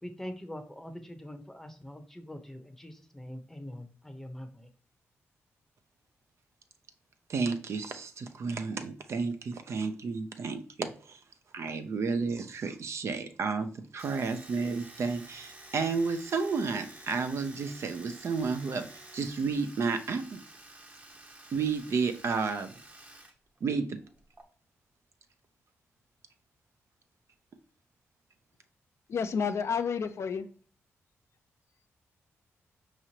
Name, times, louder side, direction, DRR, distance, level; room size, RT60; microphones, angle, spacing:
voice 1, 0.0-4.7, left 1 dB, 5° left, 7 dB, 0.8 m, -43 dB
voice 2, 7.3-11.2 11.5-18.9 19.1-20.4 21.5-22.7 23.6-24.0, right 4 dB, 60° right, 8 dB, 0.5 m, -31 dB
Domestic sounds home sounds, 14.0-23.3 23.6-24.4, right 2 dB, 25° right, 0.9 m, -51 dB
voice 3, 29.1-30.5, left 6 dB, 60° left, 9 dB, 0.4 m, -30 dB
4.8 x 3.0 x 2.8 m, 0.42 s
cardioid pair, 70°, 5 cm